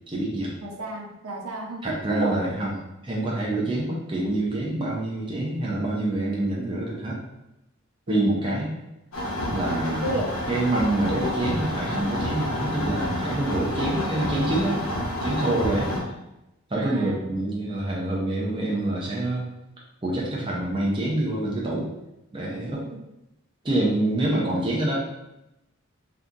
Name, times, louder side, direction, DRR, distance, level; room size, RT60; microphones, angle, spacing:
voice 1, 0.1-0.5 1.8-2.8 3.0-7.2 8.1-8.8 9.5-10.0 10.5-14.8 15.2-15.9 16.7-19.4 20.0-21.9 22.3-22.8 23.6-25.0, right 1 dB, 25° right, -4 dB, 0.5 m, -26 dB
voice 2, 0.6-2.4 8.1-8.3 10.0-10.3 16.8-17.2, right 1 dB, 85° right, -1 dB, 0.7 m, -31 dB
sound 1, 9.1-16.0, left 1 dB, 75° left, 0.9 m, -29 dB
2.8 x 2.4 x 3.6 m, 0.91 s
head